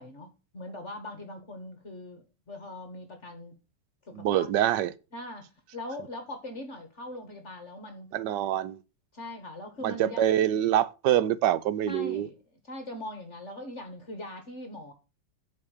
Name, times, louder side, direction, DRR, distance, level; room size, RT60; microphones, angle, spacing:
voice 1, 0.0-3.5 4.0-4.5 5.1-8.1 9.1-10.2 11.9-12.4 12.6-14.9, left 1 dB, 40° left, 1.6 m, -41 dB
voice 2, 4.1-4.9 8.1-8.8 9.8-12.3, right 11 dB, 75° right, 1.3 m, -25 dB
8.3 x 4.7 x 6.4 m
omnidirectional pair, 1.9 m